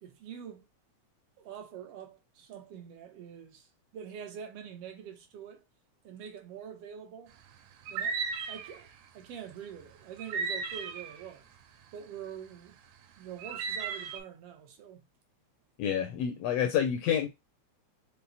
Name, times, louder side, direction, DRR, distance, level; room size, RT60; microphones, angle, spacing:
voice 1, 0.0-0.6 1.4-3.7 3.9-5.6 6.0-7.3 7.9-8.9 9.1-11.4 11.9-12.8 13.2-15.0, right 8 dB, 70° right, 1.5 m, -45 dB
sound 1, 7.9-8.8 10.2-11.3 13.4-14.2, right 5 dB, 90° right, 2.2 m, -35 dB
voice 2, 15.8-17.3, left 9 dB, 80° left, 1.5 m, -28 dB
5.6 x 2.1 x 3.9 m
omnidirectional pair, 3.4 m